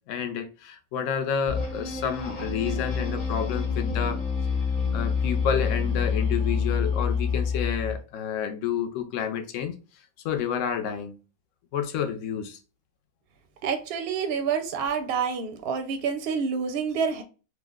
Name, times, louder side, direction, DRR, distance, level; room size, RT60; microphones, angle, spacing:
voice 1, 0.1-4.2 4.9-9.8 10.2-11.2 11.7-12.6, left 8 dB, 70° left, 0.9 m, -30 dB
sound 1, 1.5-8.0, left 5 dB, 35° left, 0.8 m, -27 dB
voice 2, 13.6-17.2, right 6 dB, 65° right, 0.6 m, -28 dB
3.2 x 2.0 x 3.5 m
omnidirectional pair, 1.5 m